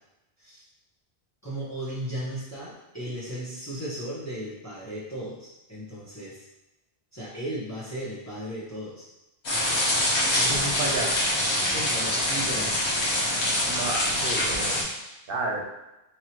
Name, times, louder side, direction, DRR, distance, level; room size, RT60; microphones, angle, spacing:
voice 1, 1.4-6.5 7.1-9.1 10.3-10.9 11.2-11.4 11.7-12.9, right 1 dB, 15° left, -9 dB, 1.2 m, -36 dB
sound 1, 9.4-14.8, left 1 dB, 75° left, 1.5 m, -25 dB
voice 2, 10.5-11.1 13.6-14.8 15.3-15.7, right 2 dB, 60° right, -1 dB, 1.0 m, -31 dB
4.6 x 3.4 x 3.0 m, 0.94 s
omnidirectional pair, 1.1 m